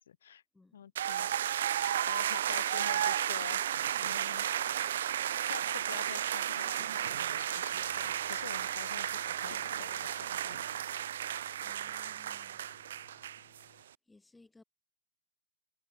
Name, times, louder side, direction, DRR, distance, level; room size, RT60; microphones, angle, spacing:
voice 1, 0.0-0.4 0.7-1.3 2.0-3.6 4.0-4.5 5.4-11.1, left 9 dB, 80° left, 3.1 m, -48 dB
voice 2, 0.5-0.9 11.6-12.6 13.7-14.6, left 2 dB, 5° left, 2.8 m, -62 dB
sound 1, 1.0-13.6, right 11 dB, 65° right, 0.3 m, -33 dB
sound 2, 6.5-8.5 9.5-10.5 11.3-11.5 12.0-12.5, left 12 dB, 60° left, 4.2 m, -59 dB
sound 3, 7.7-13.8, left 36 dB, 35° left, 2.3 m, -64 dB
hypercardioid pair, 165°, 0 cm